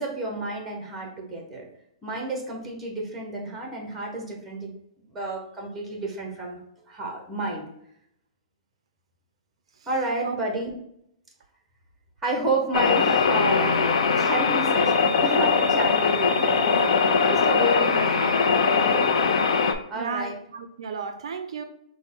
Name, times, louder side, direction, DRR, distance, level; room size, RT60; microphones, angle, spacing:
voice 1, 0.0-1.6 2.0-4.7 5.1-6.6 6.9-7.6 9.9-10.8 12.2-13.8 14.2-19.3 19.9-20.4, right 1 dB, 5° right, 0 dB, 0.7 m, -30 dB
sound 1, 12.7-19.7, left 5 dB, 60° left, 0.5 m, -21 dB
voice 2, 19.9-21.6, right 6 dB, 55° right, 8 dB, 0.4 m, -33 dB
5.8 x 2.0 x 3.5 m, 0.76 s
hypercardioid pair, 175°, 4 cm